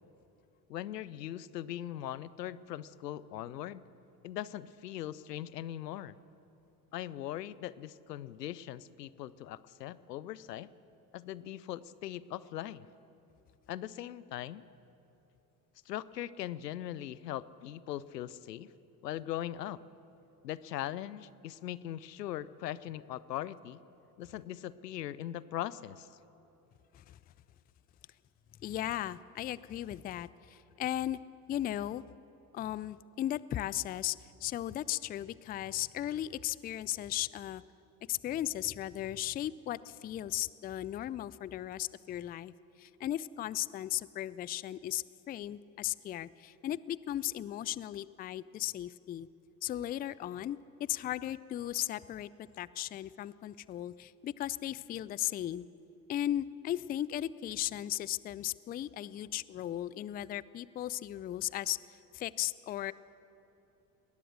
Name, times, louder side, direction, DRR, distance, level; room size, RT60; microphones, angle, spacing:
voice 1, 0.7-3.8 4.2-6.2 6.9-10.7 11.1-12.9 13.7-14.6 15.9-18.7 19.0-19.8 20.4-23.8 24.2-26.1, left 12 dB, 80° left, 19 dB, 0.7 m, -40 dB
voice 2, 28.6-31.2 31.5-32.0 32.5-34.2 34.4-37.6 38.1-42.5 42.8-49.3 49.6-52.3 52.6-55.7 56.1-61.8 62.1-62.9, left 13 dB, 20° left, 20 dB, 0.4 m, -36 dB
21.0 x 19.5 x 6.4 m, 2.9 s
figure-of-eight pair, 65°, 48 cm